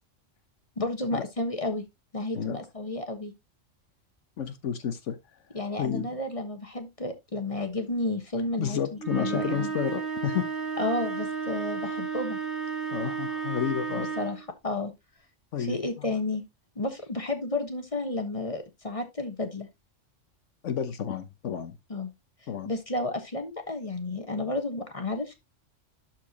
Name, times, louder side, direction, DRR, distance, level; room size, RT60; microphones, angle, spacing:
voice 1, 0.8-1.8 2.1-3.3 5.5-9.7 10.8-12.4 13.9-14.9 15.6-16.4 16.8-19.7 21.9-22.1 22.6-25.4, left 2 dB, 30° left, 1.2 m, -32 dB
voice 2, 4.4-5.2 5.8-6.2 8.6-10.5 12.9-14.1 15.5-16.1 20.6-21.7 22.5-22.7, left 8 dB, 75° left, 1.2 m, -31 dB
sound 1, 9.0-14.5, right 6 dB, ahead, 2.3 m, -33 dB
12.0 x 4.5 x 2.8 m
omnidirectional pair, 1.3 m